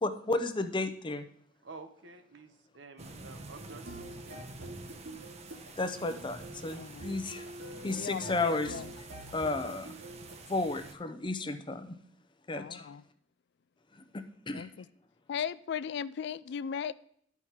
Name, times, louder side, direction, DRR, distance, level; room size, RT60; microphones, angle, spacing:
voice 1, 0.0-1.3 5.8-7.4 7.8-8.8 9.3-9.9 10.5-11.9 12.5-12.9 14.1-14.7, left 2 dB, 25° left, 0.6 m, -33 dB
voice 2, 1.6-4.5 6.0-6.2 9.6-9.8, right 3 dB, 70° right, 1.0 m, -51 dB
sound 1, 3.0-10.9, right 3 dB, 35° right, 0.9 m, -49 dB
sound 2, 3.5-10.4, right 1 dB, 85° right, 2.6 m, -46 dB
voice 3, 6.8-7.1 8.0-8.9 12.5-13.0 14.5-14.9 15.3-16.9, left 7 dB, 65° left, 0.3 m, -37 dB
11.0 x 4.7 x 5.7 m
head